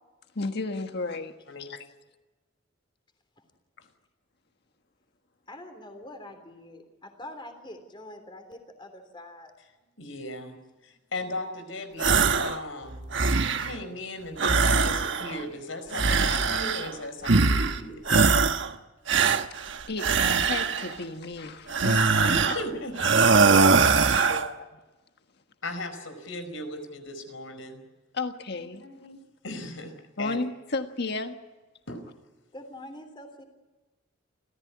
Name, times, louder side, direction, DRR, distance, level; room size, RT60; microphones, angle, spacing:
voice 1, 0.3-1.3 1.6-1.8 19.9-22.2 24.3-24.8 28.1-28.8 30.2-31.4, left 3 dB, 55° left, 1.5 m, -33 dB
voice 2, 5.5-9.5 32.5-33.4, left 1 dB, 25° left, 3.3 m, -44 dB
voice 3, 10.0-10.6 10.8-18.0 22.2-24.2 25.6-27.8 28.8-29.9 30.2-30.4 31.9-32.0, left 1 dB, 85° left, 4.9 m, -37 dB
sound 1, 12.0-12.6 12.9-13.8 14.4-15.4 15.9-16.9 17.2-17.8 18.1-18.7 19.1-20.9 21.7-22.6 23.0-24.5, right 4 dB, 65° right, 1.2 m, -22 dB
29.5 x 15.0 x 9.6 m
head